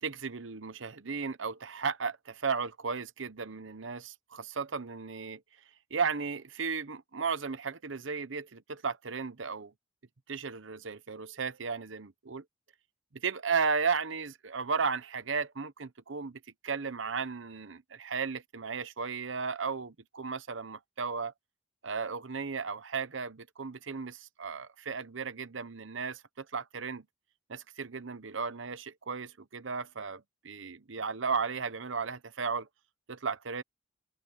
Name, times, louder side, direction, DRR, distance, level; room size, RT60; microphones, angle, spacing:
voice 1, 0.0-5.4 5.9-9.7 10.3-12.4 13.2-21.3 21.8-27.0 27.5-32.7 33.1-33.6, right 5 dB, 75° right, 0.9 m, -35 dB
head